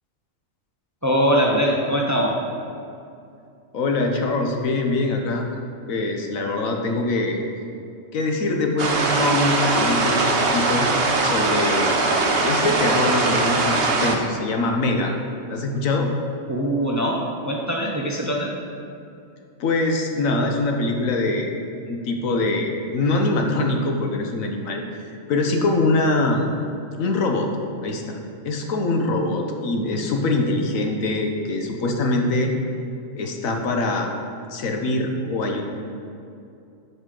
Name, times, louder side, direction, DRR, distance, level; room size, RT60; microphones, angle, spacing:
voice 1, 1.0-2.3 16.5-17.2 17.4-18.5, equal, 15° right, -1 dB, 0.7 m, -22 dB
voice 2, 3.7-5.4 5.9-7.4 8.1-10.9 11.2-11.9 12.4-15.1 15.5-16.1 19.6-21.5 21.9-24.8 25.3-26.5 27.0-27.5 27.8-28.2 28.4-32.5 33.1-34.1 34.5-35.6, left 2 dB, 80° left, 2 dB, 1.3 m, -23 dB
sound 1, 8.8-14.2, right 3 dB, 50° right, 1.0 m, -21 dB
12.0 x 5.5 x 3.8 m, 2.6 s
omnidirectional pair, 1.4 m